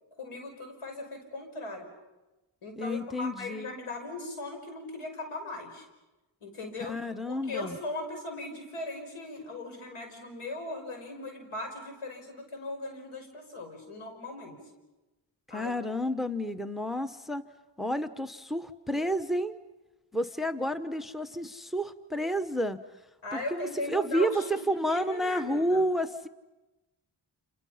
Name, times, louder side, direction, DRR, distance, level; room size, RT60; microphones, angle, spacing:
voice 1, 0.2-1.9 2.6-5.8 6.4-6.9 7.3-14.6 15.5-16.0 23.2-25.8, left 2 dB, 85° left, 4 dB, 5.8 m, -38 dB
voice 2, 2.8-3.7 6.9-7.8 15.5-17.4 17.8-19.6 20.1-22.8 23.3-26.3, equal, ahead, 11 dB, 1.0 m, -30 dB
30.0 x 28.0 x 5.8 m, 1.1 s
cardioid pair, 70°, 49 cm